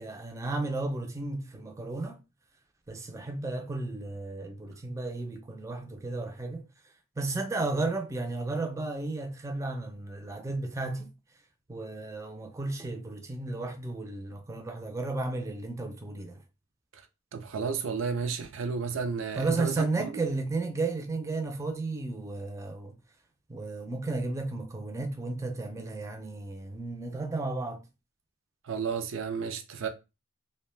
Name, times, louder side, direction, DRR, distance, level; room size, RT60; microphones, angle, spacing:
voice 1, 0.0-2.2 2.9-6.6 7.2-11.1 11.7-16.4 19.4-22.9 23.5-27.8, right 3 dB, 15° right, 0.4 m, -33 dB
voice 2, 17.3-20.1 28.6-29.9, right 5 dB, 85° right, 0.4 m, -32 dB
2.4 x 2.1 x 3.1 m
head